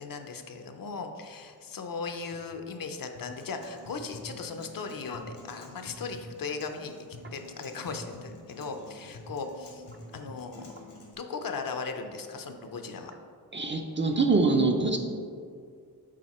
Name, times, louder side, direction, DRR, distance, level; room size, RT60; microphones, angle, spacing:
voice 1, 0.0-9.8 10.1-10.7 11.2-13.1, left 4 dB, 60° left, 6 dB, 0.6 m, -37 dB
Acoustic guitar, 3.2-11.1, left 1 dB, 85° left, 1.5 m, -48 dB
voice 2, 13.5-15.0, right 3 dB, 30° right, 3 dB, 0.4 m, -24 dB
7.5 x 4.3 x 4.2 m, 2.2 s
wide cardioid pair, 165°, 39 cm